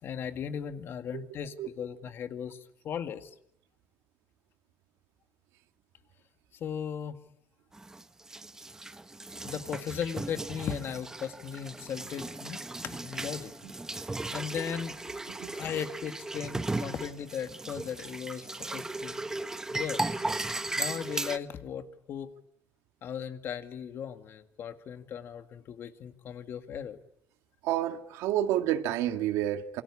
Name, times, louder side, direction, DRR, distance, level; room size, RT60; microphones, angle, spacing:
voice 1, 0.0-2.6 2.8-3.3 6.5-7.2 9.4-13.5 14.3-15.0 15.5-18.5 18.7-19.2 19.7-20.0 20.8-22.3 23.0-27.0, left 8 dB, 50° left, 2.0 m, -37 dB
sound 1, 7.7-21.4, right 2 dB, 10° right, 1.0 m, -36 dB
voice 2, 27.6-29.8, right 12 dB, 90° right, 2.0 m, -29 dB
27.5 x 24.5 x 8.6 m
cardioid pair, 135°, 5 cm